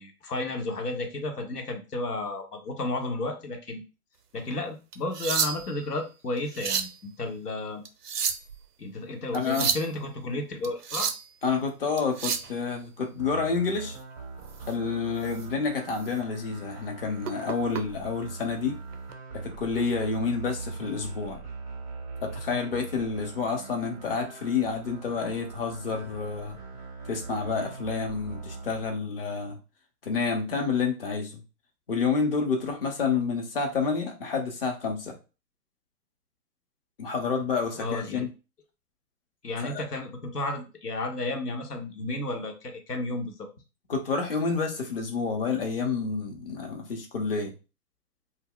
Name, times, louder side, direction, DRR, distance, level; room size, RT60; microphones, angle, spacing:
voice 1, 0.0-3.8 4.3-7.8 8.8-11.1 37.8-38.3 39.4-43.5, left 2 dB, 85° left, 4 dB, 1.0 m, -32 dB
sound 1, 4.9-5.8 6.4-7.0 7.8-8.6 9.3-9.9 10.6-11.3 12.0-12.5 14.6-14.7 15.2-15.5 15.9-16.1 17.2-17.8 18.9-19.1, right 7 dB, 85° right, 0.6 m, -30 dB
voice 2, 9.3-9.7 11.4-14.0 14.7-18.8 19.3-21.4 22.2-26.6 27.1-29.6 30.1-31.4 31.9-35.1 37.0-38.3 39.6-39.8 43.9-47.5, left 5 dB, 40° left, 2 dB, 0.7 m, -29 dB
sound 2, 13.2-28.8, right 4 dB, 10° right, 0.5 m, -41 dB
2.3 x 2.1 x 3.6 m, 0.31 s
hypercardioid pair, 140°, 46 cm